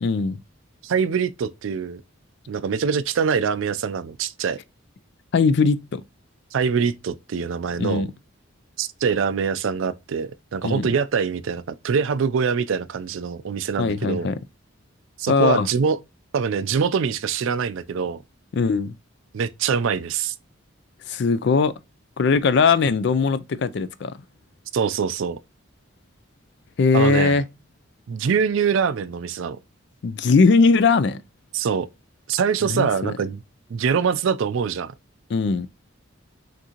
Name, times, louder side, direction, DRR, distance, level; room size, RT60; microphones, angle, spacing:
voice 1, 0.0-0.4 5.3-6.0 7.8-8.1 10.6-10.9 13.8-14.4 15.3-15.7 18.5-18.9 21.1-21.7 22.2-24.1 26.8-27.4 30.0-31.2 32.7-33.1 35.3-35.7, left 4 dB, 55° left, 0.3 m, -20 dB
voice 2, 0.8-2.0 2.5-4.6 6.5-8.1 8.8-14.3 15.2-16.0 16.3-18.2 19.3-20.3 24.7-25.4 26.9-27.4 28.1-29.6 31.5-31.9 32.3-33.4 33.7-34.9, right 6 dB, 70° right, 0.4 m, -24 dB
6.1 x 2.6 x 2.9 m
head